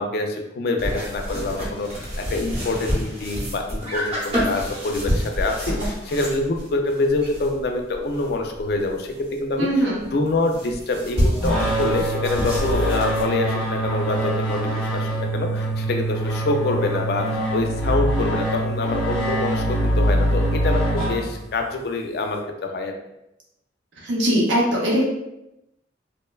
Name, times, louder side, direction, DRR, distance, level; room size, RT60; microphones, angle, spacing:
voice 1, 0.0-9.7 10.1-22.9, left 2 dB, 55° left, 3 dB, 0.3 m, -26 dB
sound 1, 0.8-9.3 9.7-9.8 10.0-13.2, equal, 35° right, 0.7 m, -28 dB
voice 2, 9.6-10.0 24.0-25.0, equal, 75° right, -3 dB, 0.7 m, -20 dB
sound 2, 11.4-21.7, right 1 dB, 5° left, 0.8 m, -24 dB
2.9 x 2.1 x 2.2 m, 0.88 s
head